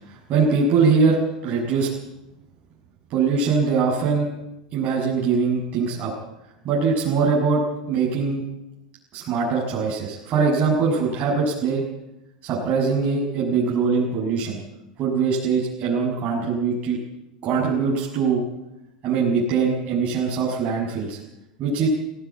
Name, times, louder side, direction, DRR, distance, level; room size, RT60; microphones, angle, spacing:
voice 1, 0.3-1.9 3.1-4.3 4.7-6.1 6.6-7.6 7.9-8.4 9.1-11.8 12.4-14.6 15.0-17.0 17.4-18.4 19.0-21.2 21.6-21.9, right 5 dB, 45° right, -4 dB, 6.7 m, -22 dB
18.5 x 17.5 x 8.5 m, 0.92 s
hypercardioid pair, 90°, 4 cm